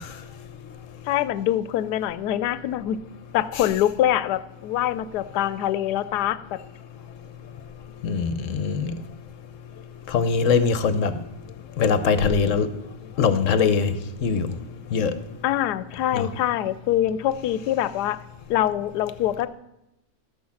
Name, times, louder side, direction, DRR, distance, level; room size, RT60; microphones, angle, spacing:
voice 1, 1.1-3.0 3.3-6.4 15.4-18.2 18.5-19.5, left 12 dB, 85° left, 15 dB, 1.1 m, -24 dB
voice 2, 8.0-8.9 10.1-11.1 11.8-12.7 13.2-13.9 14.2-14.5 14.9-15.1 16.1-16.3, left 5 dB, 60° left, 11 dB, 1.1 m, -21 dB
13.5 x 6.3 x 7.1 m, 0.89 s
omnidirectional pair, 1.7 m